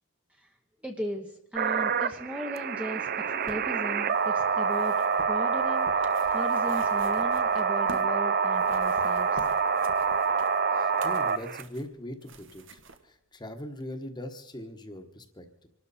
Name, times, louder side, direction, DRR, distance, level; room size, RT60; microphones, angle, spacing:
voice 1, 0.8-5.0 5.3-9.5, equal, 5° right, 3 dB, 0.8 m, -37 dB
sound 1, 1.6-11.6, right 5 dB, 45° right, 0.5 m, -26 dB
sound 2, 3.0-8.2 8.5-13.0 13.8-13.9, right 2 dB, 65° right, 1.3 m, -49 dB
voice 2, 10.7-15.7, left 1 dB, 20° left, 7 dB, 1.2 m, -41 dB
25.5 x 12.5 x 4.2 m, 0.90 s
head